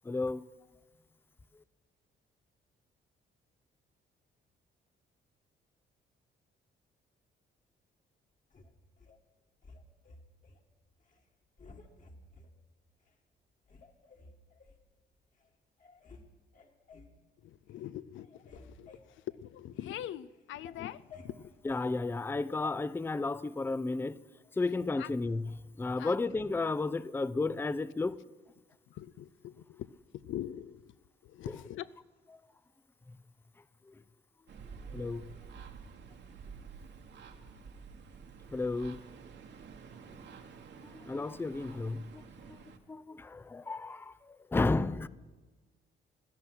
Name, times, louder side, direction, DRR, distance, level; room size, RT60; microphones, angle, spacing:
voice 1, 0.0-0.4 21.6-24.2 24.5-25.4 25.8-28.2 33.9-34.0 34.9-35.3 38.5-39.0 40.8-42.2 42.5-45.1, left 3 dB, 10° left, 0.4 m, -33 dB
sound 1, 8.5-9.2 9.6-10.6 11.0-11.2 11.6-12.5 13.1-13.2 13.7-14.8 15.4-15.5 15.8-16.3 16.5-17.2 17.6-17.9 18.1-20.0 20.3-21.9 22.6-22.8, left 3 dB, 40° left, 1.9 m, -54 dB
voice 2, 17.4-21.5 22.0-22.1 24.9-25.1 26.0-26.2 28.9-29.9 30.1-30.9 31.2-31.9, left 12 dB, 75° left, 0.5 m, -43 dB
sound 2, 34.5-42.8, right 5 dB, 60° right, 1.5 m, -50 dB
16.5 x 12.5 x 6.1 m
cardioid pair, 90°, 20 cm